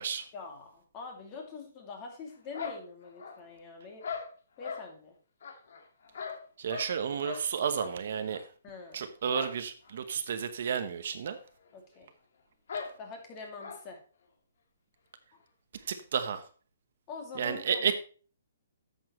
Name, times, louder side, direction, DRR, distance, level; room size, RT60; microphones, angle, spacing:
voice 1, 0.3-4.2 4.6-5.1 8.6-9.0 11.7-12.1 13.0-14.0 17.1-17.9, left 4 dB, 25° left, 2.6 m, -44 dB
sound 1, 2.5-3.6 4.0-4.9 5.4-7.0 7.2-7.5 7.8-8.0 8.3-8.4 9.3-9.6 9.8-9.9 10.3-10.4 11.3-11.4 11.7-11.8 12.7-12.9 13.6-13.8, left 6 dB, 65° left, 1.9 m, -40 dB
voice 2, 6.6-8.5 8.9-11.4 15.7-16.5 17.3-18.0, right 7 dB, 60° right, 1.0 m, -32 dB
11.0 x 7.2 x 3.1 m
hypercardioid pair, 160°, 0 cm